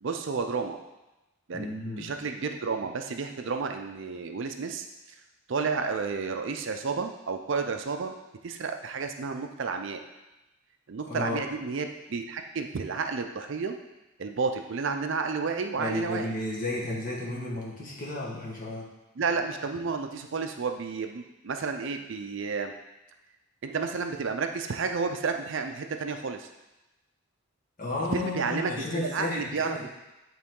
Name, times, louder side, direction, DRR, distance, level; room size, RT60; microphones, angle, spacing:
voice 1, 0.0-0.8 1.5-1.7 2.0-4.9 5.5-8.1 8.4-10.0 10.9-13.7 14.2-16.3 19.2-22.7 23.6-26.5 28.1-29.8, right 5 dB, 55° right, 5 dB, 0.4 m, -31 dB
voice 2, 1.5-2.1 11.1-11.4 15.8-18.9 27.8-29.8, left 2 dB, 40° left, -4 dB, 1.3 m, -33 dB
8.4 x 3.7 x 3.7 m, 1.0 s
head